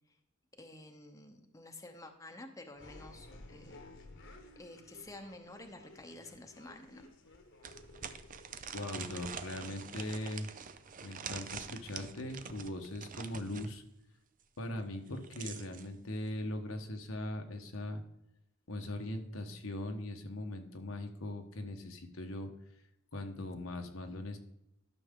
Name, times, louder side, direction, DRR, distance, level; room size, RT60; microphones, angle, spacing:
voice 1, 0.6-3.8 4.6-7.1, left 2 dB, 15° left, 4 dB, 0.9 m, -50 dB
sound 1, 2.7-11.4, left 2 dB, 65° left, 1.3 m, -56 dB
sound 2, 6.1-6.2 6.7-6.8 7.6-13.7 14.9-15.9, right 7 dB, 40° right, 0.6 m, -45 dB
voice 2, 8.7-10.5 11.0-13.8 14.6-18.0 18.7-22.5 23.1-24.4, left 1 dB, 85° left, 4 dB, 1.3 m, -40 dB
12.5 x 6.2 x 3.8 m, 0.83 s
head